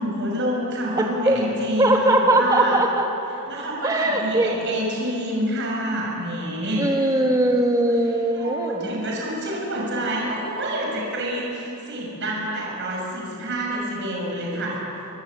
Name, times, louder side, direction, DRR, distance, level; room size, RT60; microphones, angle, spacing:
voice 1, 0.0-2.8 3.5-7.2 8.3-14.8, right 1 dB, 55° right, -2 dB, 6.3 m, -28 dB
voice 2, 1.8-3.1 3.8-4.5 6.8-8.9, right 1 dB, 15° right, 1 dB, 3.0 m, -20 dB
28.0 x 25.0 x 8.4 m, 2.9 s
head